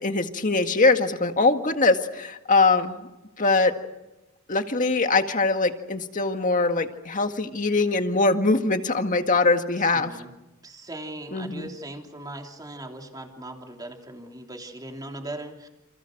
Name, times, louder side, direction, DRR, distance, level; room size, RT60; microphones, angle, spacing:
voice 1, 0.0-3.0 3.4-3.7 4.5-10.1 11.3-11.7, left 3 dB, 40° left, 6 dB, 1.9 m, -22 dB
voice 2, 9.8-10.3 10.6-15.7, right 1 dB, 20° right, 2 dB, 3.4 m, -39 dB
29.0 x 29.0 x 6.6 m, 0.97 s
head